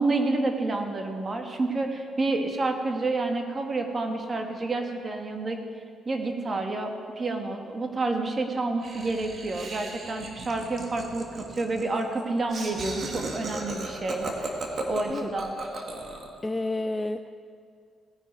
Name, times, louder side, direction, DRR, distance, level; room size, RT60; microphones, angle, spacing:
voice 1, 0.0-5.6 6.1-14.5 14.9-15.6, right 2 dB, 35° right, 4 dB, 1.7 m, -29 dB
Laughter, 8.8-16.4, right 2 dB, 50° right, 2.0 m, -36 dB
voice 2, 16.4-17.3, left 2 dB, 15° left, 7 dB, 0.4 m, -30 dB
18.0 x 10.0 x 4.7 m, 2.2 s
cardioid pair, 90°, 0 cm